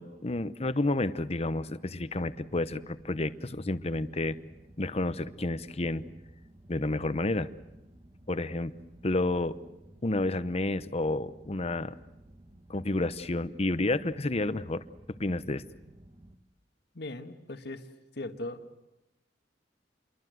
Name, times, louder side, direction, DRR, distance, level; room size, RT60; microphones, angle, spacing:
voice 1, 0.0-4.4 4.8-6.0 6.7-7.5 8.3-8.7 9.0-9.6 10.0-12.0 12.7-14.8 15.2-15.6, left 2 dB, 35° left, 13 dB, 0.9 m, -30 dB
sound 1, 1.9-16.4, right 1 dB, 35° right, 1.9 m, -55 dB
voice 2, 16.9-17.9 18.1-18.6, left 2 dB, 65° left, 7 dB, 1.7 m, -39 dB
28.5 x 23.0 x 7.9 m, 0.94 s
head